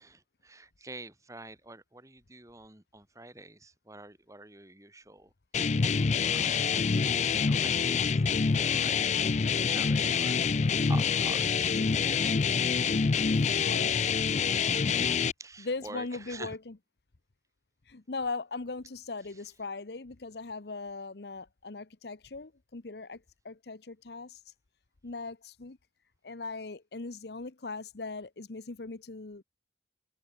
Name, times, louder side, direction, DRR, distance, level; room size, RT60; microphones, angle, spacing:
voice 1, 0.0-5.3 5.8-5.9 6.3-6.9 7.4-9.2 9.7-10.4 10.9-12.4 15.4-16.6, right 2 dB, 20° right, 3.6 m, -47 dB
sound 1, 5.5-15.3, left 5 dB, 40° left, 0.5 m, -26 dB
voice 2, 13.6-14.1 14.9-15.1 15.6-16.8 17.9-24.4 25.0-25.8 26.2-29.4, left 3 dB, 65° left, 0.9 m, -39 dB
head